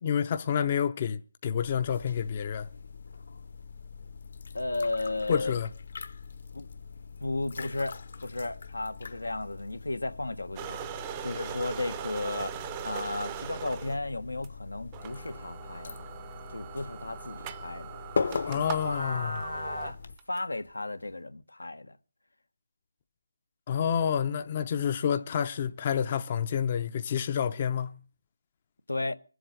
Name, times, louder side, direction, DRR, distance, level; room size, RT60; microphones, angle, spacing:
voice 1, 0.0-2.7 5.3-5.7 18.5-19.4 23.7-28.0, left 8 dB, 25° left, 0.6 m, -29 dB
sound 1, 1.6-20.1, left 5 dB, 50° left, 1.0 m, -41 dB
voice 2, 4.5-5.6 6.5-6.7 7.2-12.6 12.8-16.0 16.5-18.0 18.4-20.0 20.3-22.0 28.9-29.1, left 2 dB, 85° left, 1.3 m, -34 dB
sound 2, 10.6-14.0 14.4-14.5 14.9-20.4, right 9 dB, 15° right, 0.7 m, -40 dB
23.0 x 7.8 x 6.6 m
figure-of-eight pair, 165°, 0 cm